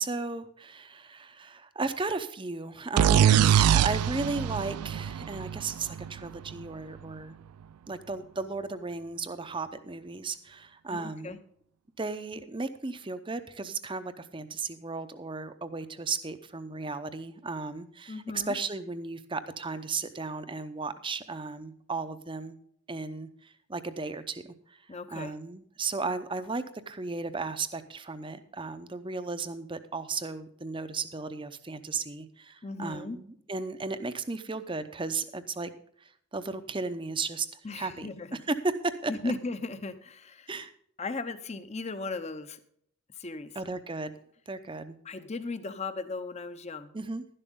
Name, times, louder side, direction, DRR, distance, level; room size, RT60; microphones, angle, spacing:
voice 1, 0.0-7.4 7.9-11.4 12.0-22.6 22.9-24.4 24.7-24.8 25.1-35.7 36.0-38.1 38.5-38.6 38.8-39.3 40.5-40.7 43.6-44.1 44.5-45.0 46.9-47.2, right 4 dB, 20° right, 11 dB, 0.7 m, -35 dB
sound 1, 3.0-6.6, right 9 dB, 85° right, 0.3 m, -23 dB
voice 2, 10.9-11.4 18.1-18.6 24.9-25.3 32.6-33.2 37.6-38.4 39.1-40.5 41.0-42.6 43.1-43.6 45.0-46.9, left 3 dB, 30° left, 11 dB, 0.8 m, -37 dB
12.0 x 11.0 x 3.7 m, 0.66 s
head